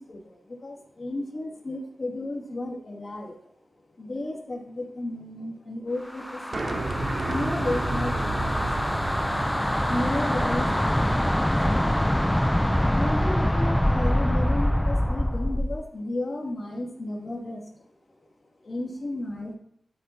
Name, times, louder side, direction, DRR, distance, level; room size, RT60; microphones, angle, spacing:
voice 1, 0.0-3.5 4.0-17.9 18.2-19.5, left 1 dB, 55° left, -2 dB, 2.4 m, -34 dB
sound 1, 6.1-15.8, equal, 5° left, 0.4 m, -25 dB
sound 2, 6.5-11.8, right 2 dB, 45° right, 1.0 m, -32 dB
12.0 x 4.6 x 4.2 m, 0.71 s
wide cardioid pair, 115°, 0 cm